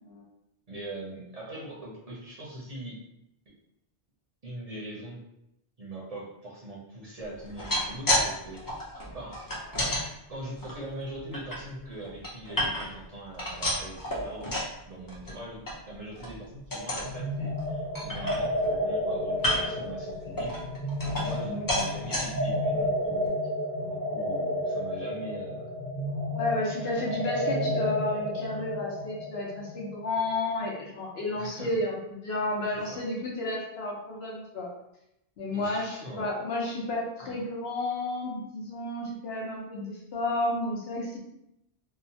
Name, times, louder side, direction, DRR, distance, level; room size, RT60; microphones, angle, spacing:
voice 1, 0.7-3.0 4.4-5.2 5.8-8.6 9.1-9.4 10.3-14.6 14.9-20.6 21.1-23.3 23.8-25.7 31.4-31.7 32.7-33.0 35.5-36.3 37.2-37.4, right 1 dB, 45° right, -5 dB, 0.6 m, -41 dB
sound 1, 7.4-8.3 8.5-10.0 10.6-11.6 12.0-13.0 13.3-14.7 15.1-15.3 15.7-15.8 16.1-16.4 16.7-17.1 17.6-17.7 17.9-18.8 19.3-19.8 20.4-21.4 21.7-22.2 22.8-22.9 23.3-23.4, left 1 dB, 30° left, 0.4 m, -30 dB
sound 2, 17.0-30.6, left 1 dB, 50° left, 1.2 m, -31 dB
voice 2, 26.3-34.7 35.4-41.2, left 2 dB, 80° left, -3 dB, 1.0 m, -32 dB
2.8 x 2.1 x 2.7 m, 0.83 s
omnidirectional pair, 1.0 m